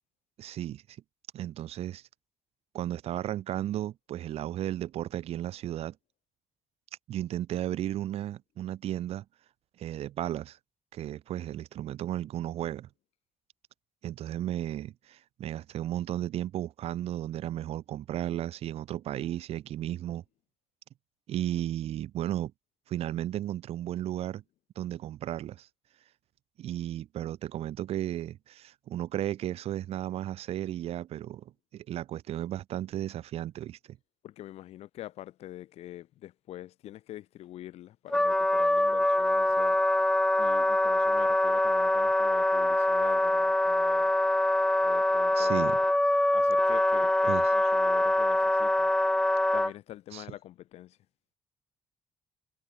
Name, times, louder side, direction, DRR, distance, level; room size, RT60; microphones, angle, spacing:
voice 1, 0.4-0.8 1.3-2.0 2.7-6.0 7.1-9.2 9.8-10.6 10.9-12.9 14.0-20.2 21.3-22.5 22.9-24.4 24.8-25.7 26.6-34.0 45.4-45.8 47.3-47.4 50.1-50.2, right 12 dB, 75° right, 2.4 m, -34 dB
voice 2, 34.2-39.8 40.4-44.1 44.8-45.9 46.3-48.9 49.5-51.0, left 13 dB, 85° left, 3.2 m, -45 dB
Wind instrument woodwind instrument, 38.1-49.7, left 1 dB, 5° left, 0.4 m, -24 dB
cardioid pair, 140°, 10 cm